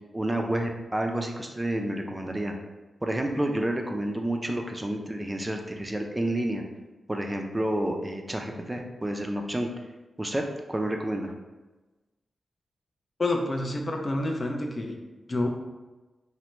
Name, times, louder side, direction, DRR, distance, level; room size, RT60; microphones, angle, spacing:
voice 1, 0.1-2.5 3.0-6.6 7.1-9.7 10.2-10.4 10.7-11.3, right 1 dB, 20° right, 3 dB, 0.4 m, -29 dB
voice 2, 13.2-15.0 15.3-15.5, left 2 dB, 40° left, 2 dB, 0.5 m, -28 dB
2.8 x 2.1 x 3.1 m, 1.2 s
cardioid pair, 50°, 0 cm